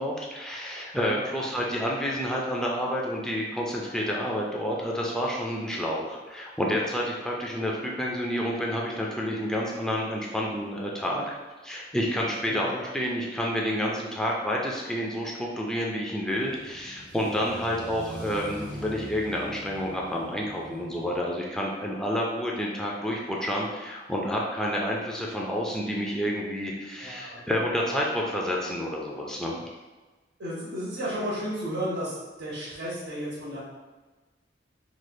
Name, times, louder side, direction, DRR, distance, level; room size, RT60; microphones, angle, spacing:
voice 1, 0.0-11.3 11.6-29.6, equal, 5° left, -3 dB, 0.3 m, -29 dB
voice 2, 12.4-12.8 27.0-27.4 30.4-33.6, equal, 85° right, -9 dB, 1.0 m, -33 dB
sound 1, 16.3-21.3, right 1 dB, 25° right, 0.8 m, -43 dB
3.1 x 3.0 x 2.3 m, 1.2 s
head